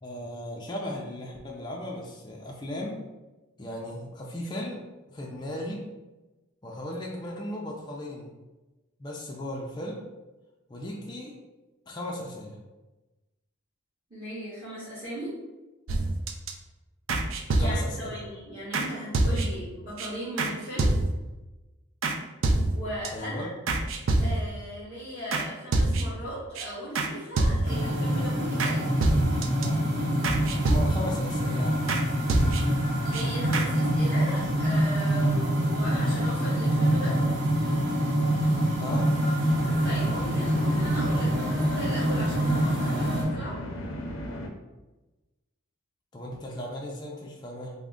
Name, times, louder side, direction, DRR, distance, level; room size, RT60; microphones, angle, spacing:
voice 1, 0.0-3.0 3.6-4.8 5.1-5.8 6.6-8.3 9.0-10.0 10.7-11.4 11.9-12.6 17.6-18.2 23.1-23.5 30.6-31.8 38.8-39.1 46.1-47.7, left 1 dB, 20° left, -2 dB, 0.4 m, -36 dB
voice 2, 14.1-15.3 17.6-20.9 22.6-23.5 24.2-28.9 33.0-37.2 39.8-43.5, equal, 20° right, -16 dB, 1.5 m, -37 dB
sound 1, 15.9-16.5 17.1-18.0 18.7-18.9 19.1-19.7 20.0-20.1 20.4-20.5 20.8-21.3 22.0-22.2 22.4-23.1 23.7-24.6 25.3-25.5 25.7-26.2 26.6-26.7 27.0-27.1 27.4-27.9 28.6-28.7 29.0-29.7 30.2-31.2 31.9-32.0 32.3-32.8 33.1-33.2 33.5-33.7, right 2 dB, 75° right, 0.4 m, -26 dB
sound 2, 27.6-43.2, right 1 dB, 55° right, 0.8 m, -26 dB
sound 3, 39.5-44.5, equal, 75° left, 0.5 m, -36 dB
3.5 x 2.1 x 3.6 m, 1.1 s
head